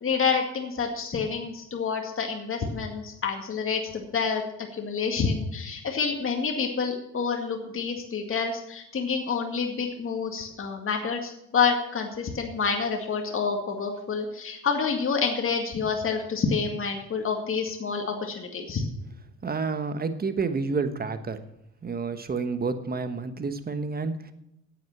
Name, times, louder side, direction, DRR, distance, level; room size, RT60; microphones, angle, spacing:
voice 1, 0.0-4.4 4.7-18.8, left 5 dB, 45° left, 3 dB, 2.1 m, -28 dB
voice 2, 19.4-21.5 21.8-24.3, right 4 dB, 30° right, 10 dB, 1.3 m, -29 dB
9.6 x 8.7 x 7.4 m, 0.81 s
cardioid pair, 90°, 30 cm